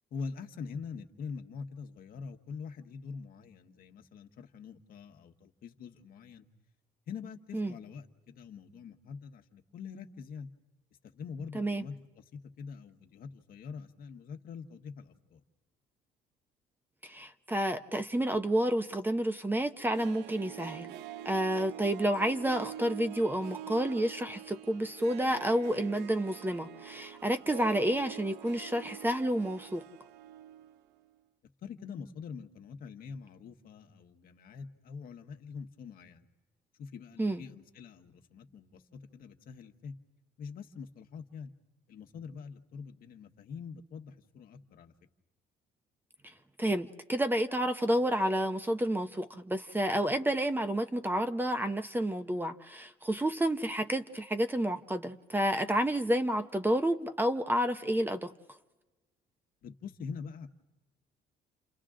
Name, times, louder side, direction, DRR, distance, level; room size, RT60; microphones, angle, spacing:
voice 1, 0.1-6.5 7.1-10.5 11.1-15.4 31.6-36.3 36.8-39.9 40.4-41.5 41.9-44.9 59.6-60.5, left 5 dB, 60° left, 6 dB, 1.4 m, -44 dB
voice 2, 17.0-20.9 21.2-29.8 37.2-37.4 46.2-46.3 46.6-58.3, right 1 dB, 10° right, 9 dB, 0.8 m, -30 dB
Harp, 19.8-30.8 31.1-31.2, right 11 dB, 85° right, 0.6 m, -45 dB
30.0 x 27.0 x 3.8 m, 1.1 s
cardioid pair, 110°, 17 cm